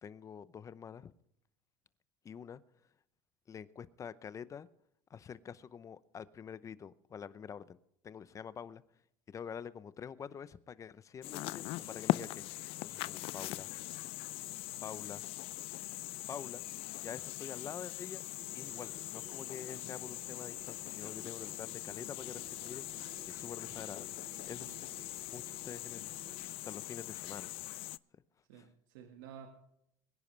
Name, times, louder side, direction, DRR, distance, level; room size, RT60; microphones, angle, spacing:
voice 1, 0.0-1.1 2.2-2.6 3.5-4.7 5.1-7.8 8.0-8.8 9.3-12.4 12.8-13.7 14.8-15.2 16.3-16.6 17.0-18.2 18.5-24.2 24.5-24.8 25.3-26.1 26.6-27.5 28.1-28.2 28.5-28.7, left 7 dB, 30° left, 17 dB, 0.8 m, -47 dB
sound 1, 11.2-28.0, left 18 dB, 60° left, 0.4 m, -41 dB
sound 2, 18.4-26.6, right 6 dB, 60° right, 2.4 m, -57 dB
voice 2, 28.5-29.5, right 8 dB, 90° right, 4 dB, 1.8 m, -52 dB
23.0 x 10.5 x 3.3 m, 0.74 s
supercardioid pair, 115°, 11 cm